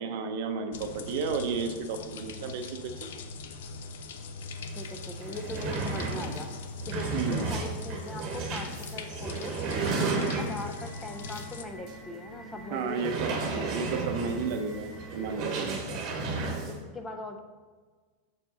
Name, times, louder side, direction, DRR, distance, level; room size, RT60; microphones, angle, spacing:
voice 1, 0.0-3.1 7.1-7.5 12.7-15.9, right 5 dB, 50° right, 7 dB, 0.6 m, -33 dB
sound 1, 0.7-11.6, left 3 dB, 70° left, 0.5 m, -42 dB
voice 2, 4.8-6.5 6.9-9.6 10.4-13.4 15.9-16.0 16.7-17.4, left 2 dB, 10° left, 5 dB, 0.4 m, -40 dB
sound 2, 4.8-4.9 5.1-10.8 11.3-11.5 11.9-12.0 12.9-16.8, right 3 dB, 30° right, 1.0 m, -33 dB
sound 3, 9.9-15.5, right 1 dB, 10° right, 1.1 m, -47 dB
6.4 x 4.8 x 3.8 m, 1.4 s
supercardioid pair, 170°, 0 cm